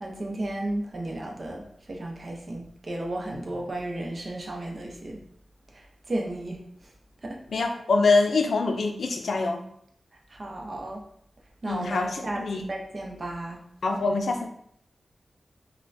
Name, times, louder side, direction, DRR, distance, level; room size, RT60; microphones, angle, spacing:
voice 1, 0.0-5.2 5.7-6.6 7.2-7.4 10.3-11.0 11.6-13.6, right 1 dB, 40° right, 0 dB, 0.6 m, -34 dB
voice 2, 7.5-9.6 11.7-12.7 13.8-14.5, left 3 dB, 80° left, 4 dB, 0.4 m, -24 dB
5.4 x 2.1 x 2.6 m, 0.69 s
wide cardioid pair, 150°, 0 cm